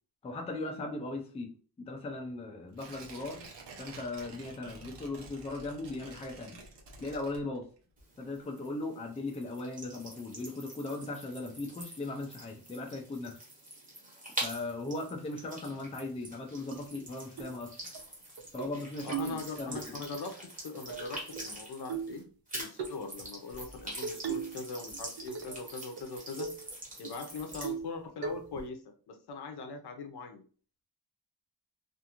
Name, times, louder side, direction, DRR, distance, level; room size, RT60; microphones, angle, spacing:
voice 1, 0.2-3.4 3.8-6.6 7.0-7.7 8.2-13.4 14.4-17.7 18.5-20.0, left 2 dB, 15° left, 1 dB, 0.3 m, -38 dB
Tearing, 2.7-7.9 8.2-8.3, right 3 dB, 90° right, 0.9 m, -50 dB
sound 1, 8.0-22.2 22.5-27.7, right 1 dB, 20° right, 0.8 m, -45 dB
sound 2, 16.7-16.8 17.4-17.6 17.9-18.0 18.4-18.7 19.1-19.9 20.9-21.5 21.9-22.2 22.8-23.0 24.0-24.6 24.9-25.6 26.0-26.1 26.4-26.6 27.0-27.1 27.6-27.9 28.2-28.7, right 7 dB, 65° right, 0.5 m, -37 dB
voice 2, 19.0-26.5 27.0-30.4, left 4 dB, 70° left, 6 dB, 0.6 m, -41 dB
2.5 x 2.4 x 2.8 m, 0.40 s
wide cardioid pair, 180°, 40 cm